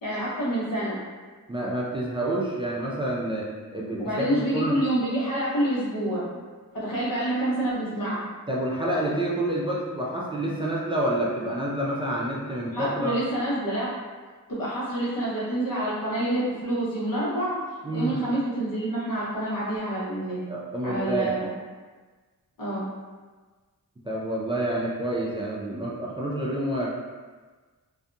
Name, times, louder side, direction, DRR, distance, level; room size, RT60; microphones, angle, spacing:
voice 1, 0.0-0.9 4.0-6.2 6.7-8.2 12.7-13.9 14.5-17.6 17.9-20.4 20.8-21.5 22.6-22.9, right 1 dB, 80° left, -9 dB, 1.2 m, -27 dB
voice 2, 1.5-4.8 8.5-13.1 17.8-18.2 20.5-21.3 24.1-26.9, right 1 dB, 15° right, -5 dB, 0.3 m, -28 dB
2.6 x 2.2 x 2.6 m, 1.4 s
wide cardioid pair, 95°, 33 cm